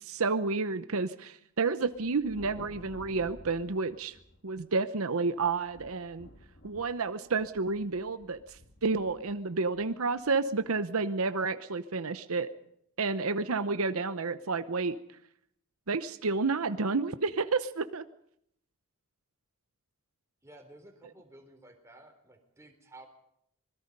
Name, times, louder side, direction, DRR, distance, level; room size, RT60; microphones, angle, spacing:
voice 1, 0.0-4.2 4.4-6.3 6.6-12.5 13.0-15.0 15.9-18.1, right 4 dB, 75° right, 11 dB, 0.8 m, -30 dB
Thunder, 1.8-4.9 5.4-10.7, left 1 dB, 55° left, 2.1 m, -53 dB
voice 2, 20.4-23.1, right 2 dB, 15° right, 4 dB, 3.7 m, -53 dB
25.5 x 21.5 x 5.4 m, 0.73 s
head